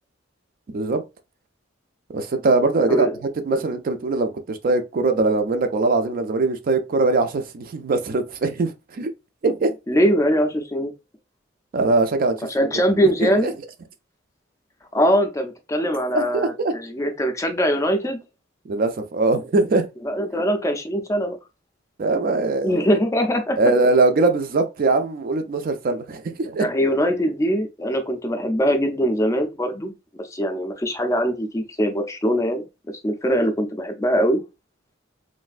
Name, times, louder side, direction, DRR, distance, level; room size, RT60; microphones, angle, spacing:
voice 1, 0.7-1.0 2.1-3.1 3.4-9.1 9.4-9.7 11.7-12.5 13.2-13.5 16.1-16.7 18.7-19.9 22.0-23.0 23.6-26.7, right 3 dB, 45° right, 0.4 m, -21 dB
voice 2, 9.9-10.9 12.5-13.5 14.9-18.2 20.0-21.4 22.6-23.6 26.6-32.7 33.0-34.4, equal, 15° left, 0.4 m, -22 dB
3.1 x 2.5 x 2.4 m
head